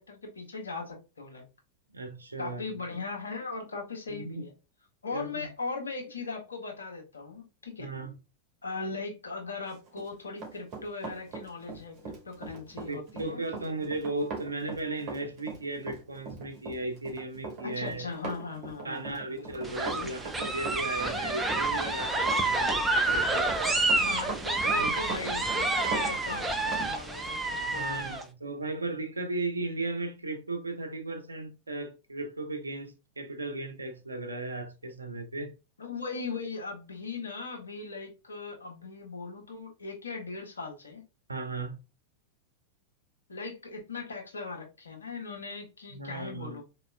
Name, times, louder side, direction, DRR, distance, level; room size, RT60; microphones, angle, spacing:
voice 1, 0.0-1.5 2.4-4.5 5.0-7.9 8.6-13.7 17.6-20.1 23.9-28.0 35.8-41.1 43.3-46.6, left 4 dB, 75° left, 1.1 m, -39 dB
voice 2, 1.9-2.8 4.1-4.4 5.1-5.5 7.8-8.2 12.9-18.0 18.8-23.6 24.8-25.0 27.7-35.5 41.3-41.8 45.9-46.6, right 2 dB, 80° right, 0.7 m, -36 dB
Run, 9.9-26.9 27.2-27.4, right 4 dB, 35° right, 1.7 m, -40 dB
sound 1, 19.6-28.2, right 2 dB, 10° right, 0.6 m, -29 dB
4.1 x 2.9 x 2.2 m
figure-of-eight pair, 90°, 0 cm